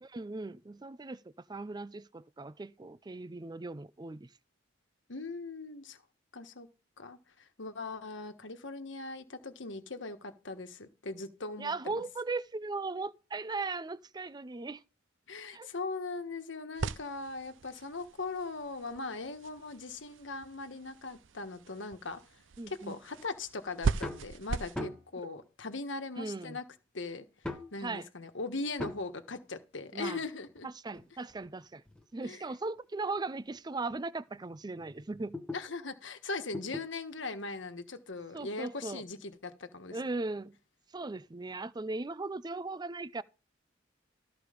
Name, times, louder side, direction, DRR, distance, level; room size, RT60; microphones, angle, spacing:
voice 1, 0.0-1.2 1.5-4.3 11.6-14.8 15.5-15.7 22.6-23.0 26.2-26.6 27.8-28.1 29.9-30.2 30.6-31.8 32.1-35.4 38.3-39.0 39.9-40.6 40.9-43.2, right 3 dB, 20° right, 0.5 m, -38 dB
voice 2, 5.1-6.0 6.3-6.7 7.0-12.0 15.3-26.6 26.9-30.7 32.2-32.5 35.5-40.2, left 3 dB, 75° left, 1.4 m, -40 dB
sound 1, 16.8-24.8, right 4 dB, 85° right, 0.6 m, -39 dB
sound 2, 23.9-24.3 24.7-25.2 26.2-26.3 27.4-27.8 28.8-29.1 30.5-32.1 32.8-32.9 33.5-33.6 33.9-34.0 34.4-35.7 36.5-36.9 38.2-38.3, left 2 dB, 5° left, 1.1 m, -41 dB
14.0 x 4.8 x 5.1 m
head